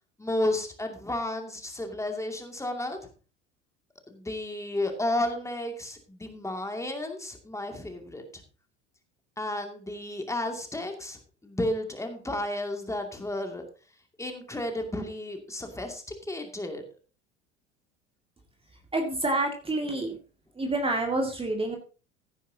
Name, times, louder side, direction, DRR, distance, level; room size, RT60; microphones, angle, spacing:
voice 1, 0.2-3.0 4.1-8.2 9.4-11.2 11.4-13.6 14.2-16.8, left 1 dB, 10° left, 4 dB, 2.4 m, -32 dB
voice 2, 18.9-20.2 20.6-21.8, right 2 dB, 15° right, 3 dB, 2.1 m, -28 dB
15.5 x 10.0 x 2.8 m, 0.35 s
figure-of-eight pair, 75°, 36 cm